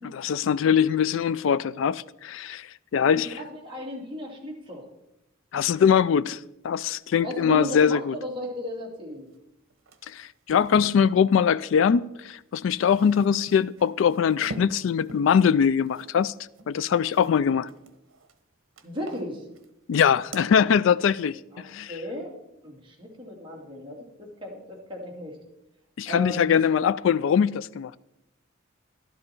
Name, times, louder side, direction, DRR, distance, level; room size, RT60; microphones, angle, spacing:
voice 1, 0.0-3.4 5.5-6.4 6.6-8.1 10.1-16.3 16.7-17.7 19.9-21.9 26.0-28.0, left 7 dB, 70° left, 0.3 m, -22 dB
voice 2, 3.1-4.8 7.2-9.3 18.8-19.4 21.5-22.3 22.6-25.4 26.1-26.6, left 1 dB, 25° right, 2.7 m, -35 dB
sound 1, 9.3-9.4 9.7-11.0 12.4-17.3 17.6-18.4 18.8-19.7 20.0-20.5, right 2 dB, 80° right, 1.1 m, -45 dB
12.0 x 11.0 x 4.5 m
head